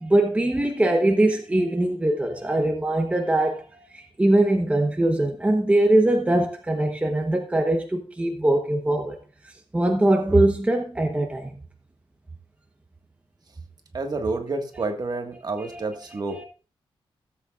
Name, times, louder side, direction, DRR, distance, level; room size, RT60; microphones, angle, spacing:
voice 1, 0.0-3.6 3.9-9.2 9.7-11.5 16.3-16.5, right 1 dB, 15° right, 1.0 m, -21 dB
voice 2, 13.9-16.5, right 3 dB, 45° right, 1.7 m, -29 dB
16.0 x 8.1 x 2.5 m
wide cardioid pair, 120°, 10 cm